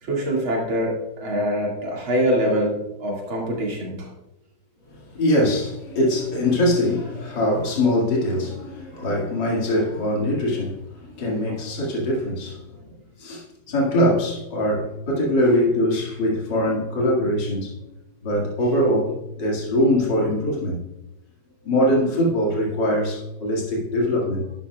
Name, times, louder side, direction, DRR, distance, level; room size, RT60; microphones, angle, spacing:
voice 1, 0.0-4.1 11.5-11.7, equal, 80° right, -2 dB, 3.0 m, -24 dB
voice 2, 4.9-12.6 13.2-17.8 18.2-20.8 21.6-24.5, left 1 dB, 60° left, -3 dB, 2.7 m, -22 dB
11.0 x 11.0 x 2.3 m, 0.91 s
omnidirectional pair, 2.2 m